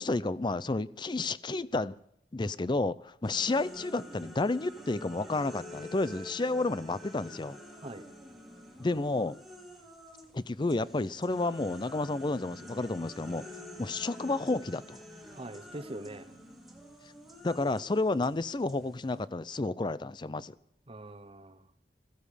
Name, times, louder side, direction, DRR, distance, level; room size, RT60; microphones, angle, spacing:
voice 1, 0.0-2.0 2.3-7.6 8.8-9.4 10.3-13.4 13.8-15.0 17.4-20.5, left 2 dB, 25° left, 17 dB, 0.5 m, -31 dB
sound 1, 3.2-10.3 10.7-19.2, left 1 dB, ahead, 2.3 m, -48 dB
voice 2, 15.3-16.3 20.9-21.7, right 1 dB, 35° right, 10 dB, 0.9 m, -43 dB
16.0 x 15.0 x 5.0 m, 0.74 s
head